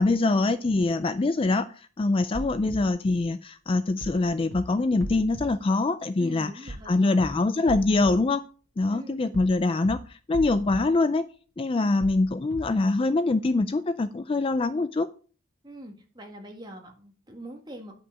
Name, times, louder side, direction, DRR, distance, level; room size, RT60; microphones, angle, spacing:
voice 1, 0.0-8.4 8.8-11.3 11.6-15.1, left 3 dB, 25° left, 12 dB, 0.3 m, -24 dB
sound 1, 2.3-2.8 4.0-4.2 4.5-4.6 5.0-5.4 6.7-6.9 7.2-7.3 7.7-8.1 9.3-9.6 9.8-9.9 10.3-10.8 12.0-12.2 12.5-12.6, right 1 dB, 60° right, 1.9 m, -37 dB
voice 2, 6.2-7.4 8.9-9.4 15.6-17.9, right 1 dB, 20° right, 2 dB, 1.6 m, -43 dB
9.8 x 5.5 x 5.3 m, 0.39 s
head